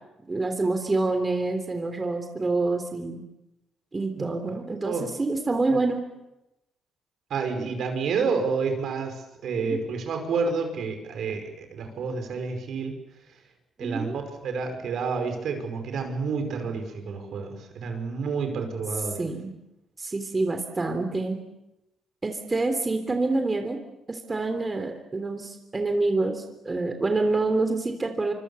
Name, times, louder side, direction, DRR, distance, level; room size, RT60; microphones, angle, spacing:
voice 1, 0.3-3.2 3.9-6.0 9.6-9.8 13.8-14.1 19.2-19.5 20.0-21.4 22.2-23.8 24.1-28.3, right 3 dB, 25° right, 6 dB, 3.3 m, -27 dB
voice 2, 7.3-13.0 13.8-14.1 14.4-19.2, right 5 dB, 70° right, 6 dB, 5.3 m, -29 dB
25.5 x 25.0 x 7.1 m, 0.93 s
cardioid pair, 90°, 0 cm